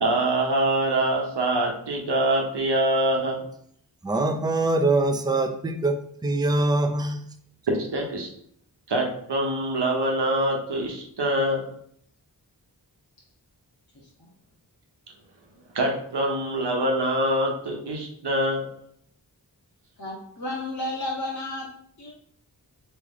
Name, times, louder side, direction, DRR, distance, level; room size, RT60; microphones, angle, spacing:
voice 1, 0.0-3.4 7.7-8.3 8.9-11.7 15.7-18.7, right 1 dB, 70° right, 1 dB, 1.0 m, -24 dB
voice 2, 4.0-7.2, right 2 dB, 10° right, 6 dB, 0.4 m, -23 dB
voice 3, 20.0-21.7 22.0-22.1, left 1 dB, 45° left, -3 dB, 0.9 m, -32 dB
3.6 x 3.2 x 3.6 m, 0.65 s
wide cardioid pair, 65°, 42 cm